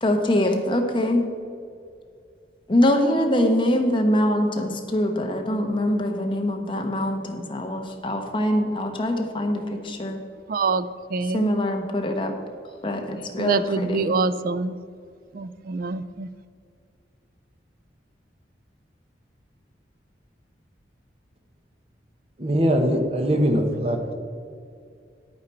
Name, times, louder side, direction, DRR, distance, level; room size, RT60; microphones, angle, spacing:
voice 1, 0.0-1.2 2.7-10.2 11.2-12.3 12.8-14.2, left 1 dB, 25° left, 3 dB, 1.0 m, -23 dB
voice 2, 10.5-11.5 13.4-14.8 15.3-16.3, right 4 dB, 50° right, 13 dB, 0.4 m, -25 dB
voice 3, 22.4-24.1, equal, 35° right, 4 dB, 1.0 m, -22 dB
10.5 x 8.7 x 4.3 m, 2.3 s
head